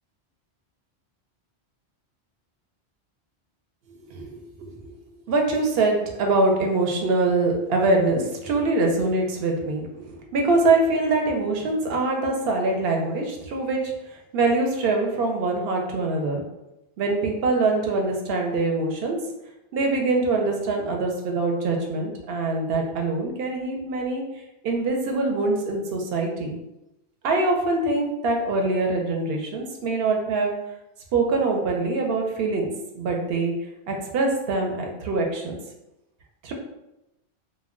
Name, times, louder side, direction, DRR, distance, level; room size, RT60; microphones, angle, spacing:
voice 1, 4.1-4.9 5.3-13.8 14.3-16.4 17.0-19.2 19.7-24.2 24.6-26.6 27.2-30.5 31.1-32.7 32.9-33.5 33.9-35.6 36.4-36.5, right 3 dB, 65° right, 1 dB, 0.8 m, -24 dB
2.1 x 2.1 x 3.5 m, 0.91 s
omnidirectional pair, 1.1 m